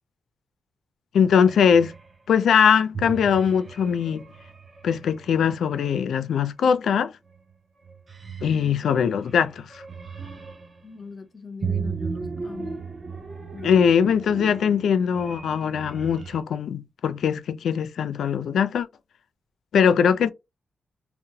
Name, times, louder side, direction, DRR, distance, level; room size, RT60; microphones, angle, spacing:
voice 1, 1.1-1.9 2.3-4.2 4.8-7.1 8.4-9.8 13.6-18.9 19.7-20.3, left 7 dB, 85° left, 0.3 m, -21 dB
sound 1, 1.3-2.1 2.9-5.6 7.2-7.5 7.8-10.8 11.6-16.4, right 5 dB, 30° right, 0.4 m, -36 dB
voice 2, 10.8-12.8 13.5-13.7, left 4 dB, 30° left, 0.5 m, -40 dB
2.8 x 2.0 x 2.7 m
wide cardioid pair, 175°, 0 cm